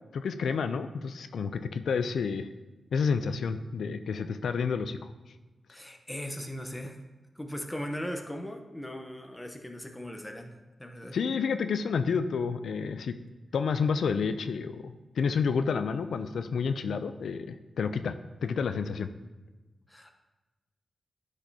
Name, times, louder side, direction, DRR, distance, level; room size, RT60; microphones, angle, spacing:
voice 1, 0.1-2.5 2.9-5.1 11.1-13.2 13.5-18.1 18.4-19.3, left 5 dB, 85° left, 10 dB, 0.3 m, -30 dB
voice 2, 5.7-7.0 7.3-11.2 19.9-20.2, equal, 10° left, 4 dB, 0.8 m, -39 dB
10.0 x 5.1 x 2.7 m, 1.2 s
wide cardioid pair, 90°, 0 cm